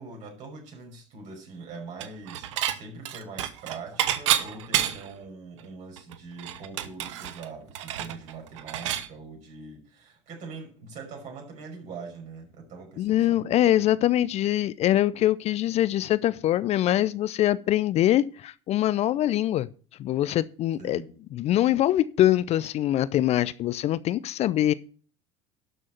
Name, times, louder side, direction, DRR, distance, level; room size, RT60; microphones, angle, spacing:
voice 1, 0.0-13.6 20.8-21.1, right 4 dB, 50° right, 5.7 m, -42 dB
Dishes pots and pans / Chink clink, 2.0-2.8 3.1-5.2 5.6-5.7 6.0-9.1, right 11 dB, 70° right, 0.9 m, -29 dB
voice 2, 13.0-19.7 20.0-21.0 21.3-24.7, left 13 dB, 45° left, 0.5 m, -23 dB
12.0 x 6.2 x 5.8 m
hypercardioid pair, 75°, 16 cm